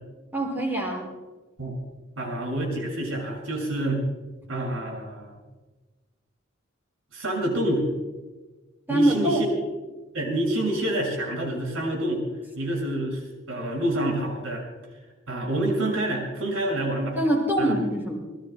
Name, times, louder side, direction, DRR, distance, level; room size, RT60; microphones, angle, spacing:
voice 1, 0.3-1.1 8.9-9.4 17.1-18.2, right 1 dB, 10° right, -1 dB, 5.9 m, -24 dB
voice 2, 2.2-4.1 4.5-5.4 7.1-7.9 8.9-9.5 10.1-12.2 12.6-14.7 15.3-17.2 17.6-17.7, right 1 dB, 85° right, 0 dB, 6.1 m, -27 dB
27.5 x 20.5 x 2.2 m, 1.2 s
head